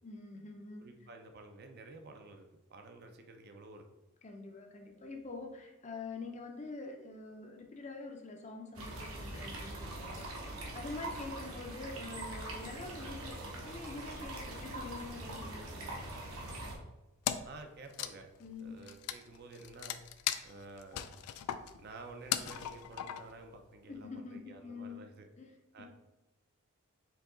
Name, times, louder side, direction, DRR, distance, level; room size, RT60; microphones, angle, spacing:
voice 1, 0.0-0.9 4.2-10.5 10.7-16.2 18.4-18.8 23.9-25.1 25.4-25.9, left 3 dB, 30° left, 3 dB, 0.5 m, -46 dB
voice 2, 0.8-3.8 11.0-11.2 17.4-18.3 18.6-20.0 20.4-21.2 21.8-25.3 25.7-25.9, right 3 dB, 45° right, 5 dB, 0.4 m, -51 dB
sound 1, 8.7-16.8, right 1 dB, 70° right, 0.9 m, -43 dB
Wood, 17.2-17.6 17.9-23.5, left 10 dB, 90° left, 0.3 m, -38 dB
4.7 x 2.8 x 3.8 m, 1.0 s
head